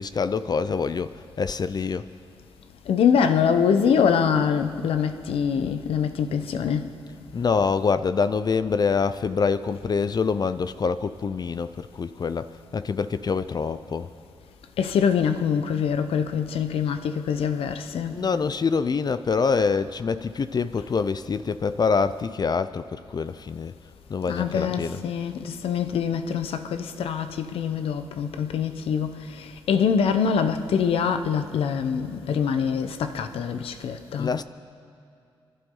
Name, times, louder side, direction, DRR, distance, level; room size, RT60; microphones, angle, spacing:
voice 1, 0.0-2.1 7.3-14.1 18.1-23.7 24.1-25.0 34.2-34.4, left 5 dB, 45° left, 0.5 m, -25 dB
voice 2, 2.9-6.9 14.8-18.2 24.3-34.3, left 7 dB, 85° left, 0.9 m, -24 dB
28.5 x 11.5 x 3.9 m
cardioid pair, 60°, 9 cm